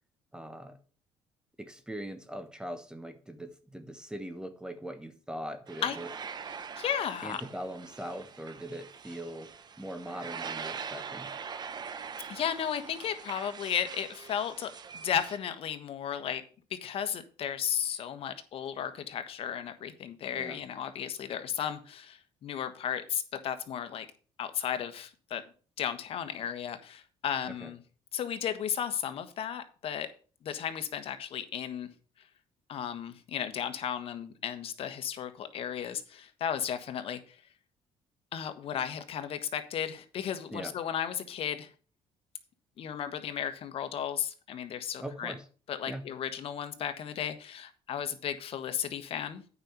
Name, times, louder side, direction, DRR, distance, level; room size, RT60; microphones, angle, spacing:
voice 1, 0.3-0.8 1.6-6.1 7.2-9.5 9.8-11.3 20.3-20.6 27.5-27.7 40.5-40.7 45.0-45.5 45.9-46.1, right 1 dB, 5° right, 1.2 m, -41 dB
sound 1, 5.7-15.4, right 6 dB, 40° right, 1.0 m, -43 dB
voice 2, 6.8-7.4 12.3-16.4 16.7-24.0 24.4-25.4 25.8-27.8 28.1-30.1 30.4-31.9 32.7-37.4 38.3-41.7 42.8-45.3 45.7-49.4, left 9 dB, 55° left, 1.4 m, -34 dB
8.9 x 5.3 x 7.0 m
cardioid pair, 100°, 11 cm